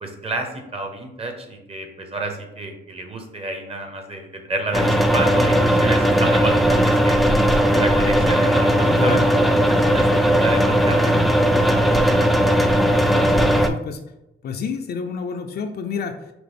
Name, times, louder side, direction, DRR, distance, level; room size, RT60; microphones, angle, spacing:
voice 1, 0.0-7.2 7.7-12.5, right 2 dB, 30° right, 4 dB, 0.9 m, -30 dB
sound 1, 4.7-13.7, equal, ahead, 0.3 m, -17 dB
voice 2, 8.9-9.3 13.1-14.0 14.4-16.3, left 6 dB, 55° left, 6 dB, 0.5 m, -29 dB
5.8 x 2.0 x 3.5 m, 0.91 s
cardioid pair, 90°, 20 cm